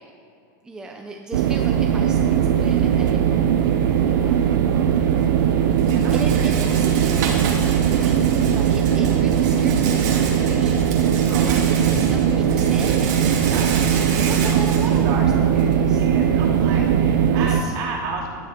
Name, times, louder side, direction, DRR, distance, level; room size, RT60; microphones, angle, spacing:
voice 1, 0.6-3.2 4.0-4.5 6.1-13.3 14.2-16.1 17.3-17.7, right 2 dB, 5° right, 2 dB, 0.7 m, -37 dB
sound 1, 1.3-17.6, right 8 dB, 90° right, 0.7 m, -19 dB
sound 2, 1.5-17.2, left 3 dB, 45° left, 1.4 m, -39 dB
Rattle, 4.7-15.7, right 5 dB, 60° right, 2.2 m, -32 dB
voice 2, 5.9-6.5 11.3-12.3 12.6-13.0 13.3-13.7 14.0-18.3, right 4 dB, 40° right, -3 dB, 3.0 m, -33 dB
16.5 x 10.5 x 4.5 m, 2.7 s
supercardioid pair, 165°, 10 cm